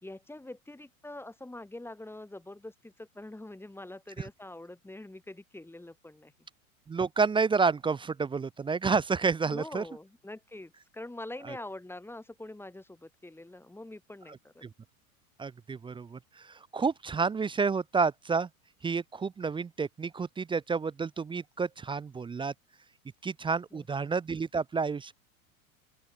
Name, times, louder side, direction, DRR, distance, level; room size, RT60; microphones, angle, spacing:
voice 1, 0.0-6.3 9.5-14.6 23.7-23.9, left 1 dB, 5° left, 4.5 m, -44 dB
voice 2, 6.9-9.8 11.5-11.6 15.4-18.5 18.8-22.5 23.2-25.1, right 5 dB, 10° right, 0.7 m, -30 dB
open air
figure-of-eight pair, 85°, 42 cm